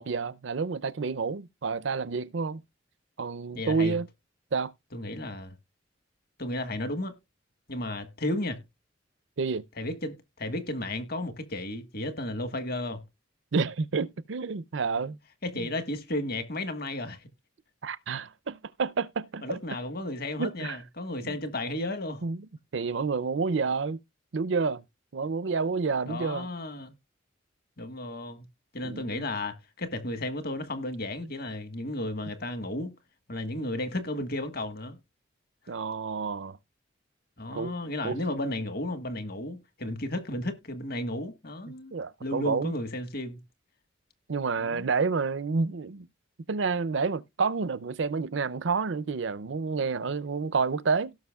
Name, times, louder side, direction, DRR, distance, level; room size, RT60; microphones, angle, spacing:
voice 1, 0.0-2.6 3.2-4.1 4.5-4.7 9.4-9.6 13.5-15.2 15.6-15.7 17.8-19.6 20.4-20.8 21.2-21.3 22.2-22.5 22.7-24.0 24.3-24.8 25.1-26.5 28.8-29.3 35.7-36.6 37.5-37.7 38.0-38.2 41.9-42.7 44.3-46.1 46.5-51.1, right 4 dB, 65° right, 0.5 m, -29 dB
voice 2, 3.5-4.0 4.9-5.5 6.4-7.1 7.7-8.6 9.8-13.0 15.4-17.3 19.4-22.2 26.1-26.9 27.8-28.4 28.7-32.9 33.3-35.0 37.4-41.9 42.2-43.4 44.6-44.9, left 1 dB, 50° left, 1.5 m, -33 dB
17.0 x 5.9 x 2.3 m
head